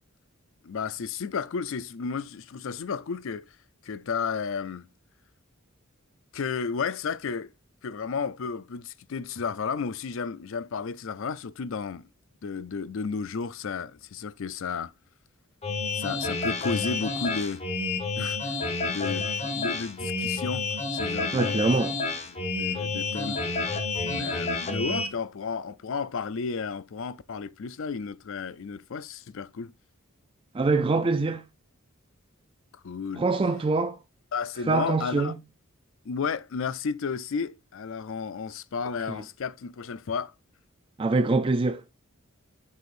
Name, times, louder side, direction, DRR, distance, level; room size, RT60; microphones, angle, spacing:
voice 1, 0.6-3.6 3.8-4.9 6.3-7.5 7.8-12.0 12.4-14.9 15.9-17.6 18.2-19.3 19.6-20.7 20.9-21.7 22.3-23.4 24.1-29.7 32.8-33.2 34.3-35.3 36.1-40.3, left 5 dB, 65° left, 0.5 m, -33 dB
sound 1, 15.6-25.1, left 3 dB, 30° left, 1.2 m, -29 dB
voice 2, 21.3-22.0 30.5-31.5 33.1-34.0 34.7-35.4 39.1-39.2 41.0-41.8, right 3 dB, 25° right, 0.4 m, -24 dB
7.0 x 6.4 x 2.5 m
head